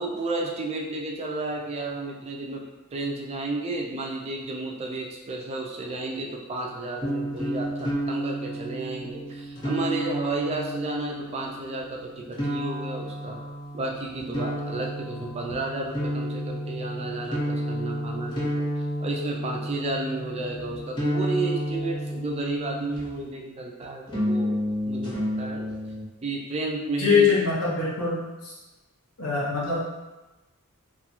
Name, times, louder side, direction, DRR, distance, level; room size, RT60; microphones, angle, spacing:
voice 1, 0.0-2.7 2.9-13.4 13.7-18.7 19.0-24.6 24.9-25.7 26.2-27.3, right 2 dB, 30° right, 0 dB, 0.3 m, -32 dB
sound 1, 7.0-23.3 24.1-26.0, equal, 20° left, 0.7 m, -31 dB
voice 2, 27.0-28.5 29.2-29.8, left 5 dB, 80° left, -7 dB, 0.8 m, -23 dB
2.3 x 2.3 x 2.9 m, 1.1 s
head